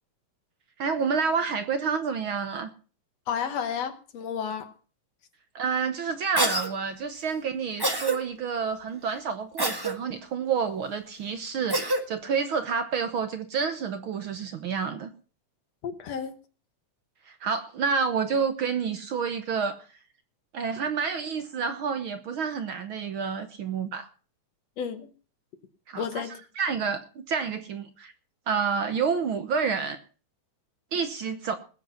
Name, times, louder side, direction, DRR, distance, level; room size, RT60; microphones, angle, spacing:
voice 1, 0.8-2.7 5.5-15.1 17.3-19.8 20.5-24.1 25.9-26.2 26.6-27.0 27.3-28.1 28.5-30.0 30.9-31.6, right 6 dB, 70° right, 1.2 m, -29 dB
voice 2, 3.3-4.7 15.8-16.3 24.8-25.1 26.0-26.3, left 7 dB, 60° left, 2.0 m, -31 dB
Cough, 6.4-6.7 7.8-8.2 9.6-9.9 11.7-12.0, right 1 dB, 20° right, 0.6 m, -25 dB
20.0 x 8.0 x 5.7 m
omnidirectional pair, 3.7 m